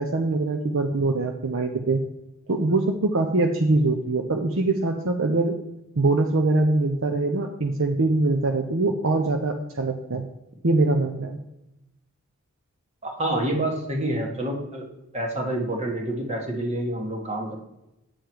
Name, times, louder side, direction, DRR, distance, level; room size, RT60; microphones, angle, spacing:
voice 1, 0.0-2.0 2.5-5.5 6.0-10.3 10.6-11.4, right 2 dB, 60° right, 5 dB, 0.7 m, -23 dB
voice 2, 13.0-14.9 15.1-17.6, right 1 dB, 30° right, 1 dB, 1.7 m, -27 dB
9.0 x 6.9 x 4.6 m, 0.90 s
head